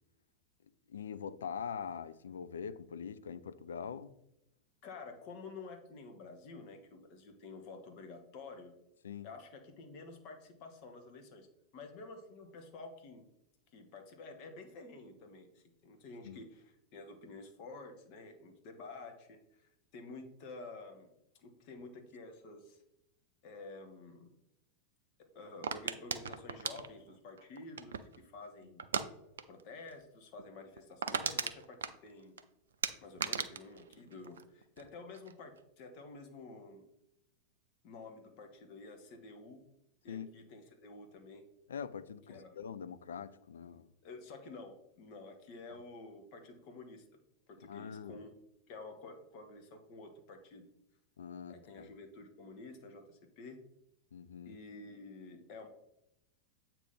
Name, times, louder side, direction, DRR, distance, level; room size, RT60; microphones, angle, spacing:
voice 1, 0.9-4.2 9.0-9.3 16.2-16.4 40.1-40.3 41.7-43.9 47.6-48.2 51.2-51.9 54.1-54.6, left 7 dB, 65° left, 0.4 m, -43 dB
voice 2, 4.8-8.7 9.2-11.5 11.7-13.2 13.7-21.1 21.4-22.8 23.4-24.4 25.2-28.8 29.5-32.4 33.0-36.8 37.8-39.6 40.0-41.4 42.3-42.6 44.0-47.0 47.5-48.3 48.7-50.7 51.5-53.6 54.4-55.7, left 3 dB, 45° left, 1.2 m, -50 dB
sound 1, 25.6-28.2 28.8-29.1 29.4-29.6 29.9-30.0 30.4-30.5 30.7-32.4 32.8-34.9 35.1-35.6, right 6 dB, 65° right, 0.4 m, -37 dB
8.2 x 2.9 x 5.4 m
figure-of-eight pair, 90°, 0 cm